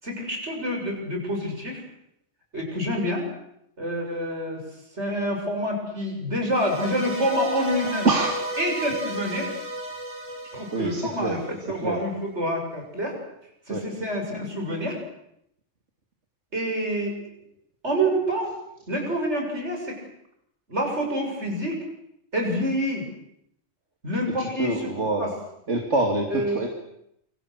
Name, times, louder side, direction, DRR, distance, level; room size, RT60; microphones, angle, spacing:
voice 1, 0.0-1.8 2.5-3.3 3.8-4.7 5.0-8.1 8.6-9.5 10.5-13.2 13.7-15.0 16.5-17.2 17.8-18.5 18.9-20.0 20.7-21.8 22.3-23.0 24.0-25.3 26.3-26.7, equal, 70° right, 1 dB, 7.1 m, -27 dB
sound 1, 6.5-11.7, right 1 dB, 10° right, 5.1 m, -33 dB
voice 2, 8.0-8.6 10.7-11.4 11.8-12.0 13.7-13.8 24.4-25.3 25.7-26.7, right 2 dB, 85° right, 2 dB, 2.9 m, -25 dB
27.5 x 25.0 x 6.5 m, 0.76 s
omnidirectional pair, 1.2 m